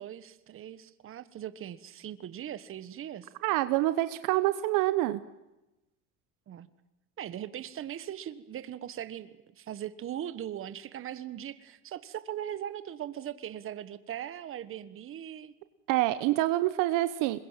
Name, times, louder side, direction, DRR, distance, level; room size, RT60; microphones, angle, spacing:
voice 1, 0.0-3.3 6.5-6.7 7.2-15.5, right 10 dB, 40° right, 13 dB, 1.4 m, -40 dB
voice 2, 3.4-5.2 15.9-17.4, right 16 dB, 65° right, 12 dB, 1.1 m, -26 dB
25.5 x 21.5 x 7.4 m, 0.96 s
supercardioid pair, 110°, 34 cm